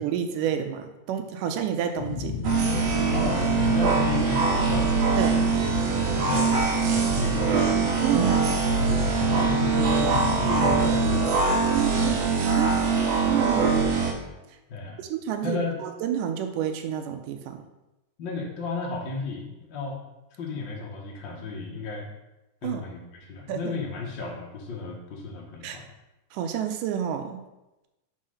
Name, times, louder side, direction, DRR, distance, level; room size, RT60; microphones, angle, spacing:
voice 1, 0.0-2.4 5.2-5.4 8.0-8.5 11.7-12.2 12.5-12.8 13.3-13.9 15.0-17.6 22.6-22.8 23.5-23.8 25.6-25.8 26.3-27.5, right 9 dB, 90° right, 6 dB, 2.2 m, -29 dB
sound 1, 2.0-11.3, left 7 dB, 85° left, 1.6 m, -33 dB
sound 2, 2.4-14.1, right 5 dB, 65° right, 2.0 m, -23 dB
voice 2, 3.1-5.0 6.0-7.7 8.7-12.4 12.8-13.0 14.7-15.0 15.4-15.8 18.2-20.0 20.3-22.1 22.6-25.9, left 3 dB, 55° left, -2 dB, 1.3 m, -34 dB
5.6 x 5.3 x 6.4 m, 0.99 s
omnidirectional pair, 3.7 m